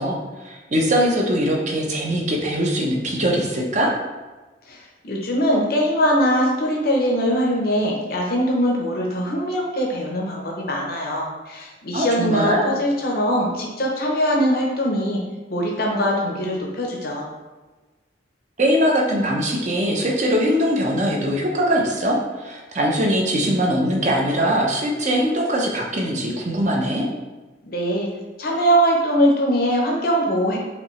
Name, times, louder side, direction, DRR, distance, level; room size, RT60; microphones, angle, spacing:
voice 1, 0.0-3.9 11.9-12.6 18.6-27.1, equal, 40° right, -1 dB, 0.7 m, -21 dB
voice 2, 4.7-15.2 15.5-17.3 27.7-28.1 28.4-30.6, equal, 55° left, -1 dB, 0.7 m, -21 dB
5.2 x 2.8 x 3.1 m, 1.2 s
head